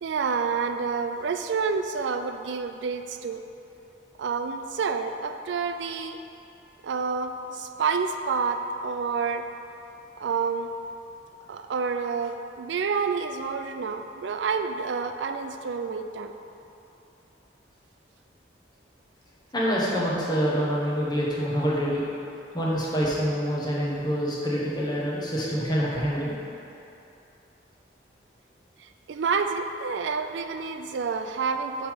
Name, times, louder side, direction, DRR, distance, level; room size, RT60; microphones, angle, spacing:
voice 1, 0.0-3.4 4.2-6.2 6.8-9.5 10.2-10.7 11.5-16.3 28.8-31.9, right 5 dB, 80° right, 7 dB, 0.4 m, -29 dB
voice 2, 19.5-22.0 22.5-26.4, equal, 25° left, -6 dB, 1.3 m, -26 dB
8.6 x 3.6 x 5.1 m, 2.9 s
head